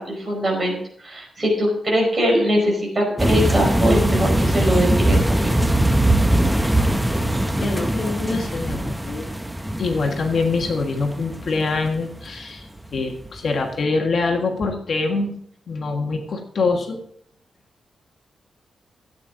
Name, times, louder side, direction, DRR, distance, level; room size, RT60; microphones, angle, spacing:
voice 1, 0.0-5.6, equal, 25° right, -1 dB, 5.0 m, -22 dB
sound 1, 3.2-12.2 12.8-13.0 13.3-13.4, right 1 dB, 5° right, 0.7 m, -21 dB
voice 2, 7.6-9.3 9.8-15.3 15.7-17.0, left 3 dB, 55° left, 3 dB, 1.6 m, -24 dB
14.0 x 9.0 x 3.9 m, 0.66 s
wide cardioid pair, 150°, 0 cm